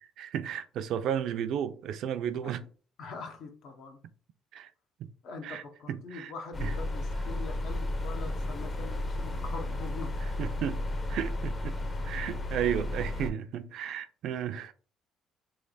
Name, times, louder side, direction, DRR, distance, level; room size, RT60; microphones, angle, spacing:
voice 1, 0.2-2.7 4.5-4.7 5.0-5.1 5.4-5.6 5.9-6.3 6.6-6.7 10.4-10.8 11.1-11.8 12.0-14.7, right 9 dB, 70° right, 0.4 m, -33 dB
voice 2, 3.0-4.0 5.2-10.1, left 4 dB, 70° left, 0.9 m, -43 dB
sound 1, 6.5-13.3, left 1 dB, 25° left, 0.6 m, -33 dB
3.2 x 2.9 x 3.9 m
cardioid pair, 120°, 0 cm